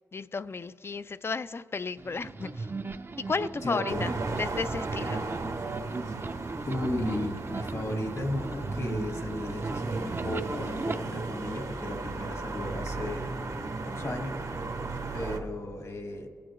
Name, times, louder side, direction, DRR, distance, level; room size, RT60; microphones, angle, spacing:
voice 1, 0.1-2.7 3.3-5.2, left 4 dB, 45° left, 14 dB, 0.4 m, -33 dB
sound 1, 2.0-11.0, right 3 dB, 40° right, 0.5 m, -36 dB
voice 2, 3.6-4.1 6.7-14.4 15.1-16.3, left 1 dB, 60° left, 4 dB, 1.5 m, -35 dB
sound 2, 3.9-15.4, right 3 dB, 65° right, 0.9 m, -36 dB
23.5 x 8.6 x 3.0 m, 2.1 s
cardioid pair, 55°, 6 cm